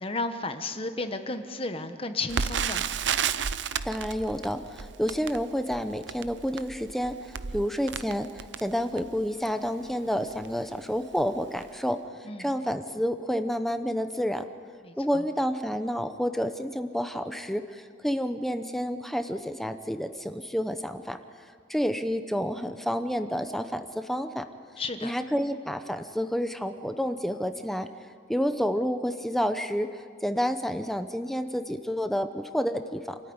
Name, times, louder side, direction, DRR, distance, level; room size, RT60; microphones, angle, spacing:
voice 1, 0.0-2.8 12.3-12.5 14.8-15.2 24.8-25.1, left 3 dB, 30° left, 8 dB, 1.2 m, -33 dB
Crackle, 2.3-9.3 9.9-10.0 10.3-10.5 11.1-11.4 11.6-11.7, right 7 dB, 70° right, 0.6 m, -32 dB
voice 2, 3.8-14.4 15.0-21.2 21.7-24.4 25.0-27.9 28.3-33.2, equal, ahead, 8 dB, 0.8 m, -29 dB
27.5 x 14.0 x 9.7 m, 2.1 s
head